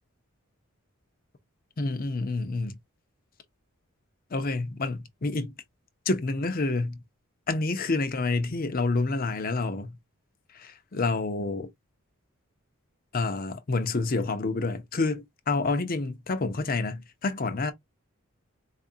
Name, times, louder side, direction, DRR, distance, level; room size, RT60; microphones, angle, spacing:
voice 1, 1.8-2.8 4.3-5.5 6.1-7.0 7.5-10.0 10.5-11.7 13.1-17.7, left 3 dB, 40° left, 0.6 m, -28 dB
4.2 x 2.4 x 2.6 m
head